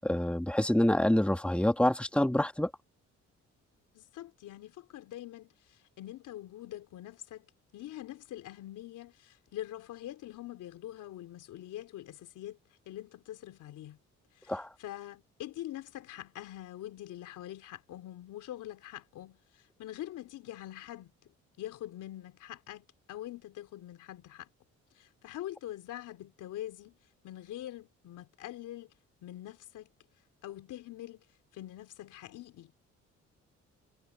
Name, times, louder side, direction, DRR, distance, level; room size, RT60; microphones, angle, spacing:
voice 1, 0.0-2.7 14.5-14.7, left 1 dB, 5° left, 2.4 m, -26 dB
voice 2, 3.9-12.6 12.9-14.0 14.4-24.5 25.0-27.0 27.2-28.9 29.2-29.9 30.4-31.2 31.5-32.7, left 13 dB, 85° left, 3.7 m, -44 dB
cardioid pair, 90°, 30 cm